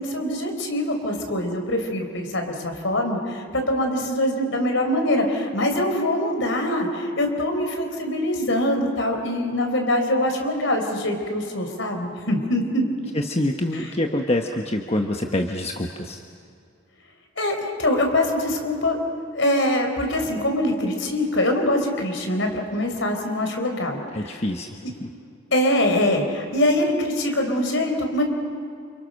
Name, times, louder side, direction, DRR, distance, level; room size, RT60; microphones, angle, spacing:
voice 1, 0.0-12.8 13.7-13.9 17.4-19.0 19.3-24.4 24.8-24.9 25.5-28.2, left 1 dB, 65° left, 4 dB, 4.5 m, -23 dB
voice 2, 13.1-16.2 24.1-24.7 25.0-25.1, left 1 dB, 30° left, 3 dB, 1.2 m, -25 dB
29.5 x 29.0 x 6.6 m, 2.4 s
head